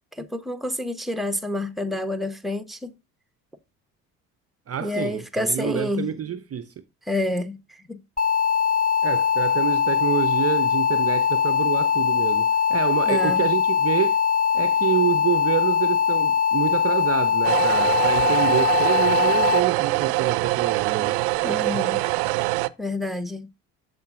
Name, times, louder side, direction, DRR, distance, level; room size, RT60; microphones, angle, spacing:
voice 1, 0.2-2.9 4.8-6.1 7.1-7.6 7.9-8.0 13.1-13.4 21.4-22.0 22.8-23.5, left 1 dB, ahead, 1.2 m, -28 dB
voice 2, 4.7-6.7 9.0-14.2 14.5-21.2, right 9 dB, 30° right, 0.8 m, -27 dB
sound 1, 8.2-19.6, left 8 dB, 15° left, 1.8 m, -21 dB
sound 2, 17.4-22.7, right 21 dB, 60° right, 0.7 m, -23 dB
14.0 x 5.2 x 2.6 m
figure-of-eight pair, 60°, 49 cm